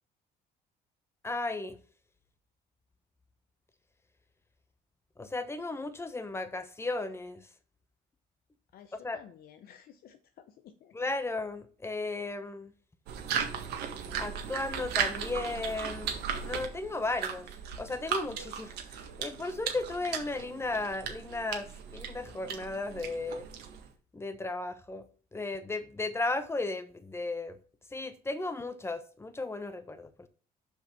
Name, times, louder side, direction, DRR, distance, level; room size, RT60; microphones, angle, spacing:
voice 1, 1.2-1.8 5.2-7.5 8.9-9.2 10.9-12.7 14.2-17.5 17.8-23.5 24.1-25.1 25.3-27.6 27.9-30.3, left 2 dB, 15° left, 1.0 m, -35 dB
voice 2, 8.7-10.9, left 9 dB, 65° left, 0.8 m, -54 dB
sound 1, 13.1-23.9, right 8 dB, 80° right, 1.7 m, -37 dB
6.6 x 5.5 x 5.4 m
cardioid pair, 110°, 17 cm